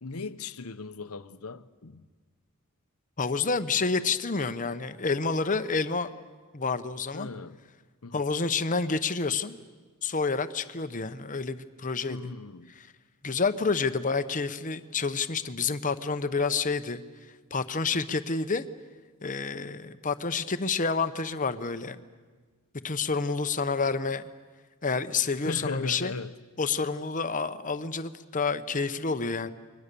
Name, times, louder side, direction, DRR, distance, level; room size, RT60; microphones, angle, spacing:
voice 1, 0.0-2.0 7.1-7.6 8.0-8.2 12.1-12.7 17.9-18.0 25.4-26.4, left 3 dB, 75° left, 0.9 m, -38 dB
voice 2, 3.2-6.1 6.5-7.3 8.1-9.6 10.0-12.2 13.2-17.0 17.5-18.6 19.2-22.0 22.8-24.2 24.8-26.1 26.6-29.5, left 4 dB, 35° left, 0.9 m, -29 dB
29.5 x 23.5 x 6.9 m
head